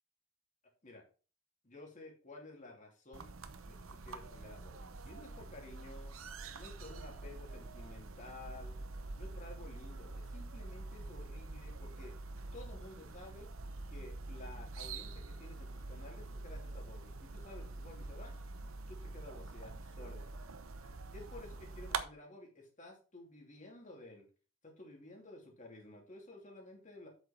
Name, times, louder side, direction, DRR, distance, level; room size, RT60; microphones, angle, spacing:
voice 1, 1.6-3.3 3.7-3.8 4.0-6.2 6.5-8.7 9.2-12.1 12.5-13.5 13.9-18.4 18.9-20.3 21.1-24.2 24.6-27.1, left 2 dB, 35° left, 0 dB, 2.8 m, -53 dB
sound 1, 3.1-22.0, right 3 dB, 75° right, 0.9 m, -45 dB
7.9 x 6.4 x 4.4 m, 0.36 s
head